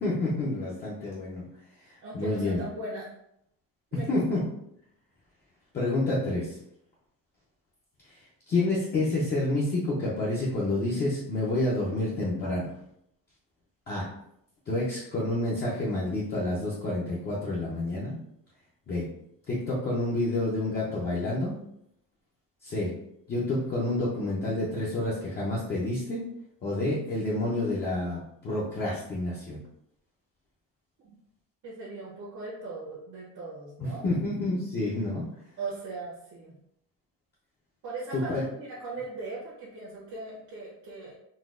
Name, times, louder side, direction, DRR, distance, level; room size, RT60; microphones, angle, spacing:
voice 1, 0.0-1.4 1.9-2.6 4.1-4.4 5.7-6.6 8.5-12.7 13.9-14.0 14.7-18.2 18.9-19.0 19.5-21.5 22.6-22.9 23.3-26.2 26.6-29.6 33.8-35.2 38.1-38.4, left 2 dB, 25° left, -6 dB, 0.6 m, -29 dB
voice 2, 2.0-3.1 3.9-4.2 31.0-31.2 31.6-34.0 35.6-36.6 37.8-41.1, right 3 dB, 55° right, -6 dB, 1.0 m, -39 dB
4.0 x 2.4 x 2.5 m, 0.74 s
cardioid pair, 155°, 37 cm